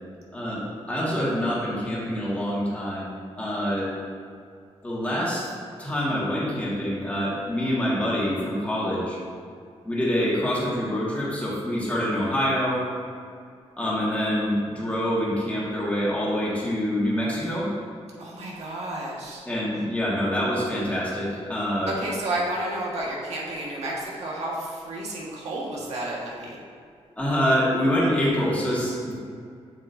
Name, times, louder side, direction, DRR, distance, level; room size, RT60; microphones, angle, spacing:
voice 1, 0.3-3.9 4.8-5.5 5.8-9.2 9.8-12.8 13.8-17.7 19.5-21.9 27.2-29.1, equal, 10° left, -7 dB, 1.8 m, -26 dB
voice 2, 18.2-19.4 21.9-26.6, right 1 dB, 80° right, -4 dB, 1.8 m, -31 dB
7.9 x 7.3 x 2.8 m, 2.3 s
wide cardioid pair, 115°, 11 cm